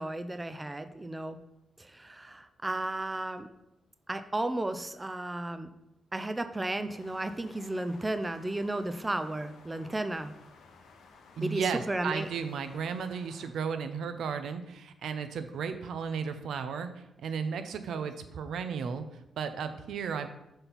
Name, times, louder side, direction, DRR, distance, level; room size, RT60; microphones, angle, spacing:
voice 1, 0.0-1.4 1.8-3.5 4.1-5.7 6.1-10.3 11.4-12.3, right 2 dB, 10° right, 9 dB, 0.3 m, -34 dB
sound 1, 6.9-13.5, left 4 dB, 90° left, 0.8 m, -56 dB
voice 2, 11.4-20.3, right 6 dB, 85° right, 9 dB, 0.6 m, -34 dB
5.3 x 4.4 x 5.7 m, 0.87 s
wide cardioid pair, 175°, 0 cm